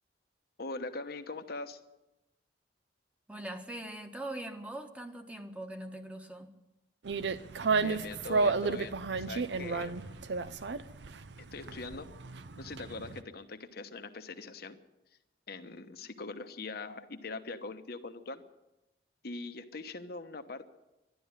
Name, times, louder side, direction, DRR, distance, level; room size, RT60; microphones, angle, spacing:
voice 1, 0.6-1.8 7.8-10.2 11.5-12.1 12.6-14.8 15.5-18.4 19.2-20.7, left 3 dB, 60° left, 1.1 m, -42 dB
voice 2, 3.3-6.5, right 1 dB, 5° right, 1.3 m, -42 dB
sound 1, 7.0-13.2, right 4 dB, 85° right, 0.7 m, -32 dB
12.0 x 12.0 x 9.6 m
head